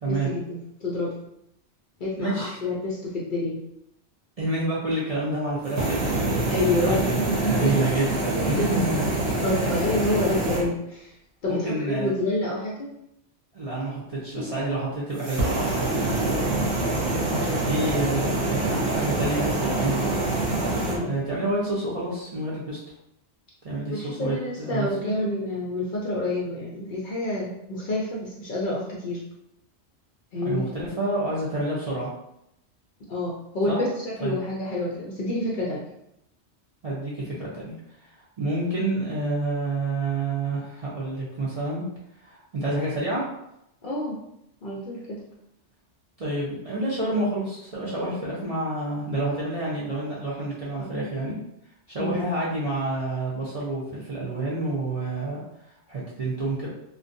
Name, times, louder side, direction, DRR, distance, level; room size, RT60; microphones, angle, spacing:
voice 1, 0.1-1.1 2.0-3.6 6.5-7.9 8.3-8.7 9.4-11.1 11.4-12.9 14.3-14.5 16.2-16.6 17.0-18.0 20.9-21.1 23.9-29.2 30.3-30.7 33.1-35.8 43.8-44.2 44.6-45.2 50.8-50.9 52.0-52.2, left 1 dB, 60° left, -4 dB, 0.6 m, -28 dB
voice 2, 2.2-2.6 4.4-6.1 6.8-9.0 9.5-9.7 11.5-12.1 13.5-16.1 17.6-20.3 21.0-22.8 23.6-25.1 30.4-32.1 33.7-33.8 34.2-34.4 36.8-37.8 38.4-41.8 42.2-43.2 46.2-51.4 51.9-55.4 55.9-56.7, right 2 dB, 45° right, -7 dB, 0.5 m, -28 dB
sound 1, 5.6-10.6 15.2-21.0, right 2 dB, 70° right, 0.9 m, -25 dB
2.5 x 2.2 x 2.5 m, 0.80 s
omnidirectional pair, 1.2 m